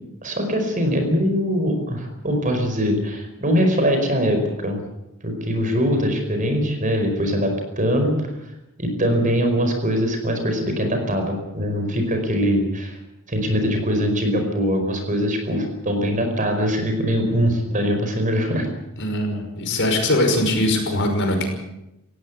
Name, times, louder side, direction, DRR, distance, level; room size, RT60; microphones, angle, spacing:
voice 1, 0.2-4.8 5.2-8.3 8.8-13.0 13.3-18.7, equal, 35° right, 5 dB, 5.1 m, -22 dB
voice 2, 19.0-21.5, left 1 dB, 55° left, 4 dB, 5.7 m, -21 dB
19.0 x 16.5 x 9.4 m, 0.91 s
head